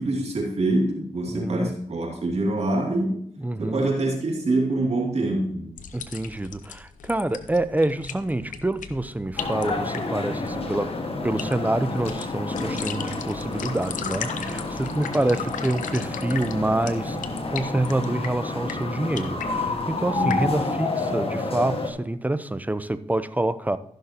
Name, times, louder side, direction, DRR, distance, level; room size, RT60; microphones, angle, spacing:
voice 1, 0.0-3.3 3.6-5.7 20.1-20.5, right 2 dB, 55° right, 2.7 m, -25 dB
voice 2, 1.3-1.7 3.4-3.8 5.9-10.9 11.2-17.2 17.5-23.8, right 1 dB, 10° right, 0.7 m, -27 dB
sound 1, 5.8-20.6, left 7 dB, 85° left, 0.7 m, -38 dB
sound 2, 9.4-21.9, left 3 dB, 50° left, 1.7 m, -30 dB
14.5 x 6.4 x 3.0 m
cardioid pair, 50°, 13 cm